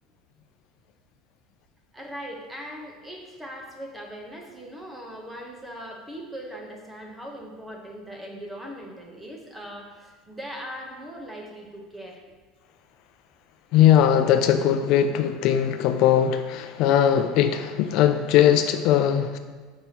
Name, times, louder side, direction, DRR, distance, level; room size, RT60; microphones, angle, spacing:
voice 1, 1.9-12.2, equal, 10° right, 1 dB, 0.8 m, -39 dB
voice 2, 13.7-19.4, left 10 dB, 55° left, 8 dB, 0.3 m, -20 dB
7.4 x 5.4 x 2.8 m, 1.5 s
cardioid pair, 155°, 0 cm